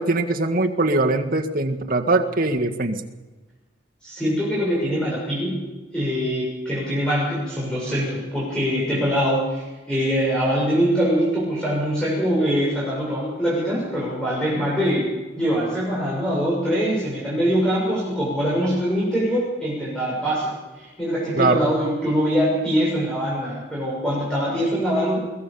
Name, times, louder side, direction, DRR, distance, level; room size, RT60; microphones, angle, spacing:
voice 1, 0.0-3.0 21.4-21.6, right 2 dB, 45° right, 4 dB, 1.7 m, -21 dB
voice 2, 4.0-5.6 5.9-15.1 15.4-25.2, equal, 5° left, -7 dB, 6.7 m, -23 dB
23.0 x 17.0 x 7.0 m, 1.2 s
head